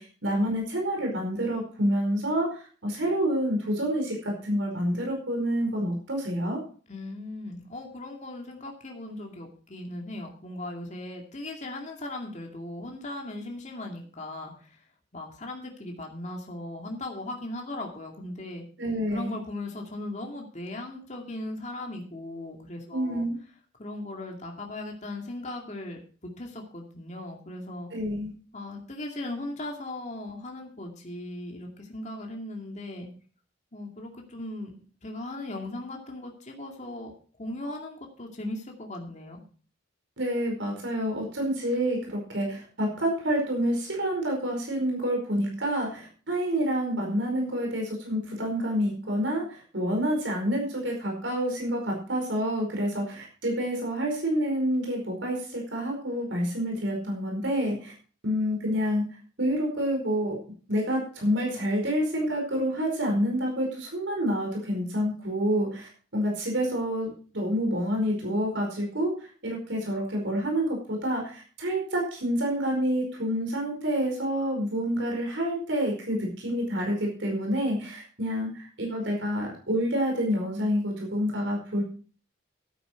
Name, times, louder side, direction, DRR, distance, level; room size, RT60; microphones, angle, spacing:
voice 1, 0.0-6.6 18.8-19.3 22.9-23.4 27.9-28.3 40.2-57.9 58.2-59.0 59.4-60.4 60.7-81.8, equal, 80° right, 0 dB, 5.0 m, -28 dB
voice 2, 6.9-14.8 15.1-18.6 19.1-23.3 23.8-26.0 26.4-27.9 28.5-33.1 33.7-34.7 35.0-37.1 37.4-39.4, left 1 dB, 40° left, 1 dB, 2.4 m, -38 dB
12.5 x 9.3 x 4.5 m, 0.41 s
head